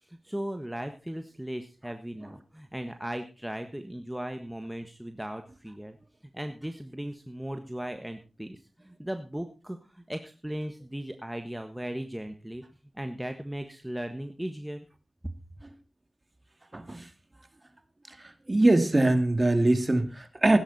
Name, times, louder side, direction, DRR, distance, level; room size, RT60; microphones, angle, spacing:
voice 1, 0.0-6.0 6.3-12.6 12.9-14.8 15.2-15.3, right 1 dB, 10° right, 6 dB, 1.4 m, -37 dB
voice 2, 16.7-17.1 18.1-20.6, right 2 dB, 30° right, 8 dB, 2.4 m, -23 dB
16.5 x 10.5 x 4.2 m, 0.32 s
cardioid pair, 50°, 0 cm